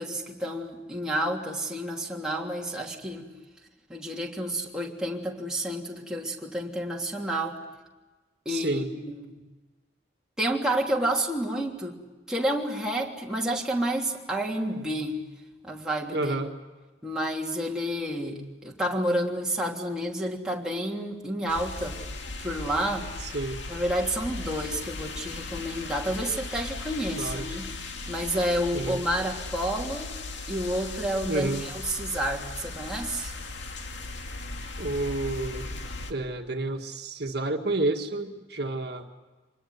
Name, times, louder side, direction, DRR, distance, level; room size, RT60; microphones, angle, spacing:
voice 1, 0.0-3.3 3.9-7.6 8.4-9.4 10.4-12.0 12.3-15.2 15.6-16.4 17.0-22.0 22.4-23.1 23.7-30.1 30.5-33.3, right 1 dB, 5° right, -2 dB, 3.1 m, -30 dB
voice 2, 8.5-8.9 16.1-16.5 23.2-23.6 27.2-27.5 28.7-29.0 31.3-31.7 34.8-35.7 36.1-39.1, right 2 dB, 55° right, 3 dB, 1.9 m, -30 dB
sound 1, 21.5-36.1, left 3 dB, 70° left, 2.4 m, -37 dB
26.0 x 21.0 x 9.6 m, 1.3 s
head